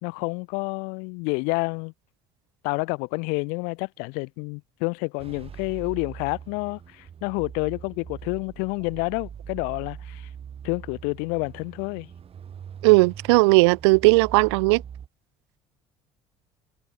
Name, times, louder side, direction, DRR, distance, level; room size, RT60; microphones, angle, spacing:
voice 1, 0.0-1.9 2.6-10.3 10.6-12.1, left 33 dB, 80° left, 3.7 m, -29 dB
sound 1, 5.2-15.1, right 8 dB, 45° right, 5.2 m, -42 dB
voice 2, 12.8-14.8, right 26 dB, 85° right, 0.5 m, -17 dB
supercardioid pair, 75°, 14 cm